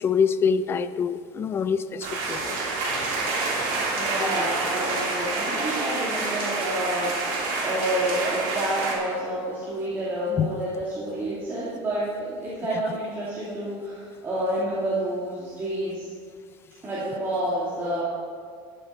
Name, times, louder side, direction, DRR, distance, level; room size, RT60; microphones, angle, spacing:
voice 1, 0.0-2.6 10.4-10.5 12.7-12.8, left 6 dB, 20° left, 12 dB, 0.4 m, -25 dB
sound 1, 2.0-9.0, right 3 dB, 65° right, 3.2 m, -27 dB
voice 2, 3.9-7.1 7.6-16.1 16.8-18.0, right 1 dB, 20° right, -10 dB, 2.7 m, -29 dB
13.0 x 9.4 x 4.3 m, 2.1 s
cardioid pair, 160°, 11 cm